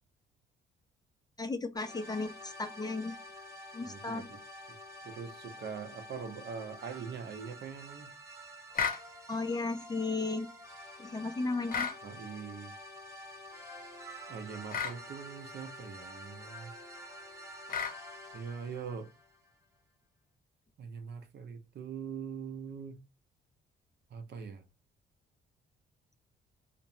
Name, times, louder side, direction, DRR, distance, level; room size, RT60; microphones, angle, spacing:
voice 1, 1.4-3.2 3.7-4.2 9.3-10.5 11.0-11.9, left 3 dB, 20° left, 0.4 m, -35 dB
sound 1, 1.8-19.6, equal, 15° right, 1.0 m, -49 dB
voice 2, 3.8-4.4 5.0-8.1 12.0-12.7 14.3-16.7 18.3-19.1 20.8-23.0 24.1-24.6, right 6 dB, 60° right, 0.7 m, -42 dB
sound 2, 8.7-9.0 11.7-12.0 14.7-15.0 17.7-18.0, left 6 dB, 45° left, 0.7 m, -32 dB
2.9 x 2.0 x 2.7 m
cardioid pair, 90°, 20 cm